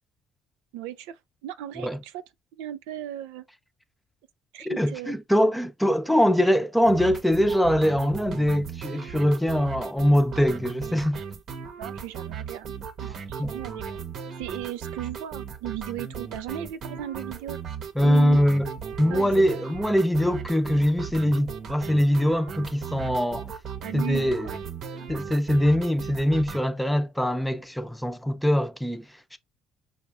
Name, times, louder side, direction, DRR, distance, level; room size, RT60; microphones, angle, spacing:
voice 1, 0.7-2.2 2.5-3.4 4.5-5.2 11.8-12.7 13.0-14.0 14.4-17.6 18.0-18.4 19.1-19.6 23.8-24.6 24.9-25.1, right 12 dB, 85° right, 0.4 m, -36 dB
voice 2, 4.7-11.2 13.4-13.5 18.0-18.7 19.0-23.5 23.9-24.5 25.1-29.4, equal, 5° left, 0.6 m, -23 dB
sound 1, 6.8-26.6, right 7 dB, 60° right, 0.9 m, -37 dB
5.5 x 2.3 x 3.4 m
supercardioid pair, 70°, 0 cm